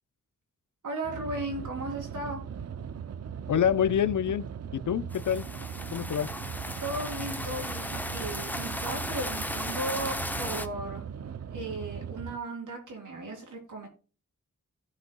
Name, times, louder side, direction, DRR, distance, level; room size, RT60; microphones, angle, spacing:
voice 1, 0.8-2.4 6.8-11.1 11.5-13.9, right 2 dB, 90° right, 3.5 m, -36 dB
sound 1, 1.0-12.4, right 7 dB, 55° right, 0.5 m, -39 dB
voice 2, 3.5-4.5 4.7-5.5 5.9-6.3, left 9 dB, 80° left, 0.6 m, -26 dB
sound 2, 5.1-10.7, left 1 dB, 5° left, 0.6 m, -36 dB
16.5 x 5.6 x 2.2 m
wide cardioid pair, 150°, 30 cm